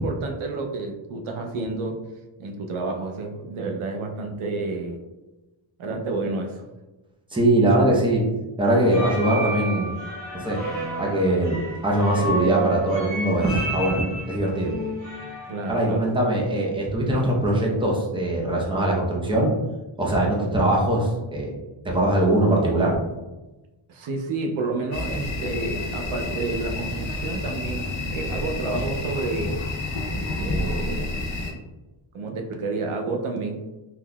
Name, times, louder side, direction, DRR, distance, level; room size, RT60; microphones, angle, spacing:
voice 1, 0.0-2.0 2.4-5.0 5.8-6.7 15.5-16.1 23.9-29.6 30.1-31.2 32.1-33.6, right 3 dB, 80° right, 3 dB, 0.6 m, -30 dB
voice 2, 7.3-8.2 8.6-9.9 10.3-10.6 11.0-14.8 15.7-19.5 20.0-21.5 21.8-23.0, right 1 dB, 10° right, -3 dB, 0.6 m, -22 dB
sound 1, 8.7-15.6, right 1 dB, 65° right, 1.4 m, -31 dB
sound 2, 24.9-31.5, left 2 dB, 65° left, 0.7 m, -29 dB
3.8 x 2.9 x 2.2 m, 1.1 s
wide cardioid pair, 130°, 49 cm